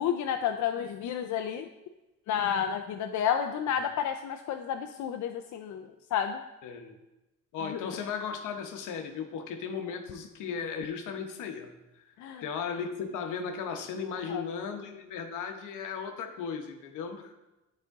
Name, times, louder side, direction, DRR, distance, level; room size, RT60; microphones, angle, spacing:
voice 1, 0.0-1.7 2.3-6.4 7.7-7.8 12.2-12.4 14.3-14.4, left 8 dB, 70° left, 6 dB, 0.5 m, -31 dB
voice 2, 6.6-7.0 7.5-11.7 12.4-17.3, left 6 dB, 90° left, 5 dB, 1.0 m, -36 dB
9.1 x 4.3 x 3.6 m, 1.0 s
cardioid pair, 90°, 30 cm